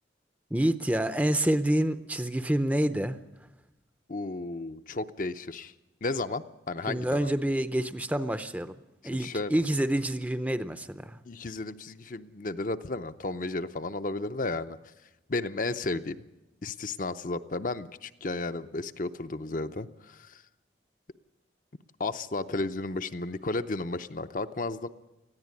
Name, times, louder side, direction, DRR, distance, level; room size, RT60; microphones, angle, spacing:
voice 1, 0.5-3.2 6.9-8.8 9.0-11.2, right 1 dB, 10° right, 11 dB, 0.6 m, -27 dB
voice 2, 4.1-5.7 6.0-7.3 9.2-9.5 11.2-14.8 15.3-16.2 16.6-20.4 22.0-24.9, left 2 dB, 45° left, 9 dB, 0.6 m, -33 dB
19.5 x 14.5 x 9.7 m, 1.0 s
head